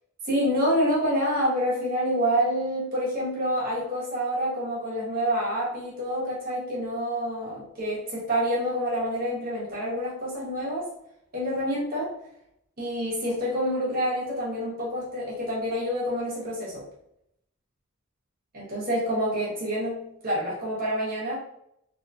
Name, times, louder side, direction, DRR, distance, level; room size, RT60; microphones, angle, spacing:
voice 1, 0.2-10.9 11.3-12.1 12.8-16.8 18.5-21.3, equal, 40° right, -7 dB, 1.4 m, -27 dB
3.1 x 3.1 x 2.7 m, 0.76 s
head